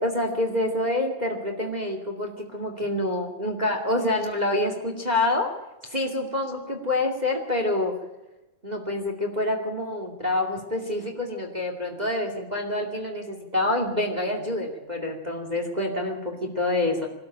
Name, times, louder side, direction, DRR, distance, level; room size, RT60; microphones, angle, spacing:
voice 1, 0.0-5.5 5.8-7.9 8.6-17.1, left 2 dB, 15° right, 3 dB, 1.6 m, -27 dB
23.0 x 13.0 x 8.8 m, 1.0 s
omnidirectional pair, 4.3 m